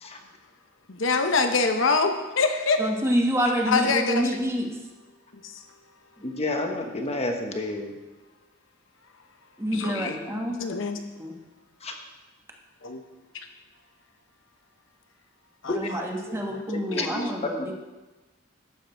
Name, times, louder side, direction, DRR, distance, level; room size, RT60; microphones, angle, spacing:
voice 1, 0.9-2.8 3.7-4.3 9.7-10.2 10.6-11.0 12.8-13.0 13.3-13.5 15.6-16.4 16.9-17.3, left 4 dB, 70° left, 6 dB, 0.9 m, -25 dB
voice 2, 2.8-4.7 9.6-10.6 11.2-11.3 15.7-17.7, equal, 15° right, 1 dB, 1.3 m, -27 dB
voice 3, 6.2-7.9 11.8-11.9 15.7-15.8 16.7-17.3, left 2 dB, 35° left, 3 dB, 1.2 m, -30 dB
12.0 x 7.6 x 4.6 m, 1.1 s
head